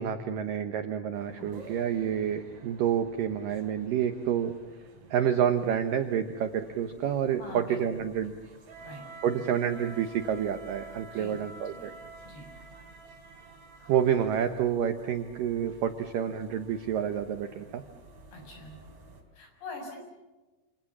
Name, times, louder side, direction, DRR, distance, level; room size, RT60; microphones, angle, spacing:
voice 1, 0.0-4.5 5.1-8.3 9.2-11.9 13.9-17.8, right 9 dB, 85° right, 8 dB, 1.9 m, -28 dB
sound 1, 1.1-19.2, right 3 dB, 40° right, 4.7 m, -51 dB
voice 2, 1.4-1.7 7.4-8.1 8.8-9.0 11.1-11.4 11.7-11.9 12.3-12.5 18.3-18.7 19.3-20.0, left 2 dB, 60° left, 2 dB, 8.8 m, -44 dB
28.5 x 27.0 x 7.3 m, 1.2 s
omnidirectional pair, 5.5 m